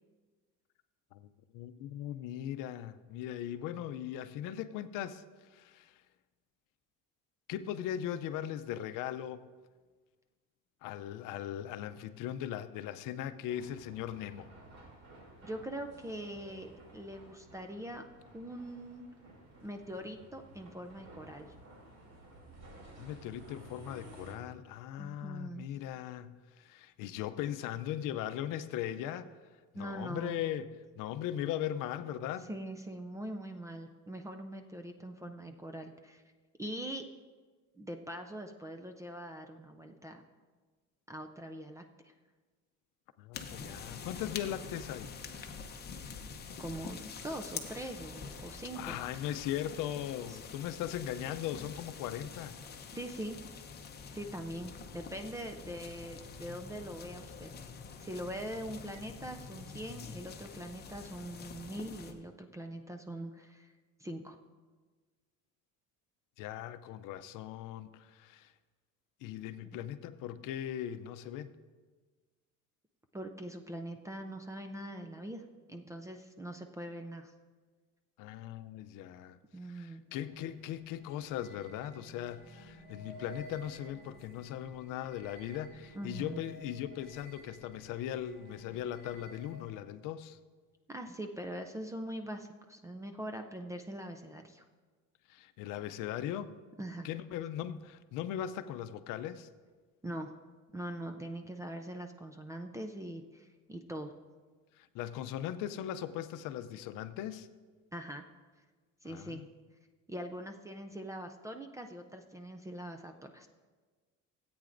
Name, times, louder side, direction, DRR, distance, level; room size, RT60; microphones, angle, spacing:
voice 1, 1.1-5.2 5.5-6.0 7.5-9.4 10.8-14.5 23.0-29.3 29.7-32.5 43.2-45.1 48.7-52.6 66.4-68.5 69.2-71.5 78.2-79.4 79.7-90.4 95.3-96.5 97.0-99.5 104.8-107.5 109.0-109.5, left 11 dB, 70° left, 12 dB, 0.6 m, -39 dB
sound 1, 13.5-24.3, right 1 dB, 50° right, 2.9 m, -54 dB
voice 2, 15.4-18.0 18.3-19.1 19.6-21.5 25.0-25.7 29.7-30.4 32.5-36.2 36.6-37.1 37.8-40.2 41.1-42.1 46.6-49.0 50.3-50.4 52.9-53.4 54.1-57.5 58.0-63.7 64.0-64.4 73.1-75.4 75.7-77.3 79.5-80.0 85.9-86.4 90.9-94.6 96.8-97.1 100.0-100.3 100.7-104.1 107.9-108.2 109.0-109.4 110.1-113.5, right 1 dB, 10° right, 5 dB, 0.3 m, -42 dB
sound 2, 43.3-62.1, left 5 dB, 30° left, 0.8 m, -46 dB
sound 3, 80.1-89.9, right 1 dB, 30° right, 2.3 m, -54 dB
17.0 x 8.7 x 2.6 m, 1.4 s
cardioid pair, 150°, 33 cm